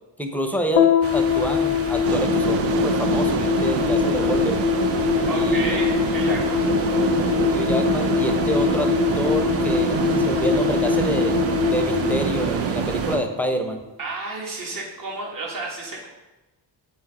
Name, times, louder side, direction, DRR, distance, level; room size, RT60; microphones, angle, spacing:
voice 1, 0.2-4.7 5.3-5.8 7.5-11.4 11.6-13.8, equal, 5° left, 5 dB, 0.6 m, -27 dB
sound 1, 0.8-13.3, left 7 dB, 90° left, 0.7 m, -23 dB
sound 2, 1.0-13.2, right 3 dB, 35° right, 0.7 m, -33 dB
sound 3, 2.0-13.2, right 8 dB, 85° right, 0.5 m, -26 dB
voice 2, 5.3-6.6 14.0-16.1, right 3 dB, 50° right, -2 dB, 1.8 m, -31 dB
7.6 x 4.0 x 4.8 m, 1.0 s
cardioid pair, 120°, 43 cm